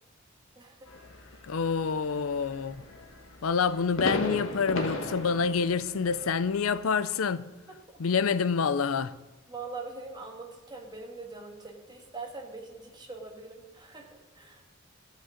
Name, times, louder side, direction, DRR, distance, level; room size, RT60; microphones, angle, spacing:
voice 1, 0.5-0.9 7.9-8.0 9.5-14.6, right 3 dB, 20° right, 1.8 m, -43 dB
sound 1, 0.9-6.8, left 2 dB, 70° left, 1.7 m, -36 dB
voice 2, 1.4-2.8 3.4-7.5 8.0-9.2, left 5 dB, 90° left, 0.5 m, -27 dB
14.0 x 6.0 x 7.1 m
head